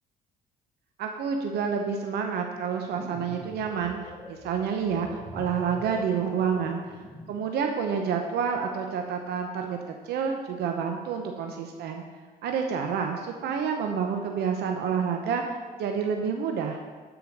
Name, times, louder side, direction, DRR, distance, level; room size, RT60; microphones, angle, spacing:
voice 1, 1.0-6.8 7.3-12.0 12.4-16.8, right 6 dB, 75° right, 3 dB, 0.9 m, -29 dB
sound 1, 2.7-7.5, left 2 dB, 15° left, 1.7 m, -44 dB
12.0 x 5.0 x 5.1 m, 1.4 s
cardioid pair, 110°, 17 cm